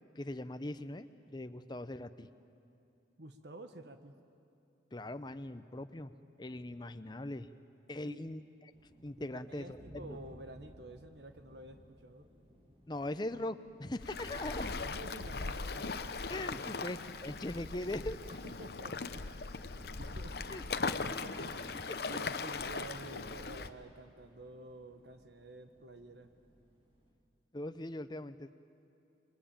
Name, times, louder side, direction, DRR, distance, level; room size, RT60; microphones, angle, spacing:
voice 1, 0.2-2.3 4.9-6.1 6.4-7.5 7.9-8.4 9.0-9.8 12.9-14.7 16.3-18.2 20.5-20.6 21.1-21.3 22.0-22.1 27.5-28.5, left 1 dB, 25° left, 11 dB, 0.8 m, -40 dB
voice 2, 3.2-4.1 8.0-8.2 9.3-12.3 14.3-16.3 16.7-17.0 18.4-19.7 19.9-20.4 20.8-21.6 22.1-26.3, right 2 dB, 70° right, 7 dB, 1.3 m, -50 dB
sound 1, 8.7-27.1, equal, 35° right, 4.9 m, -60 dB
Waves surf, 14.0-23.7, left 4 dB, 60° left, 0.9 m, -39 dB
27.5 x 23.5 x 8.9 m, 2.9 s
head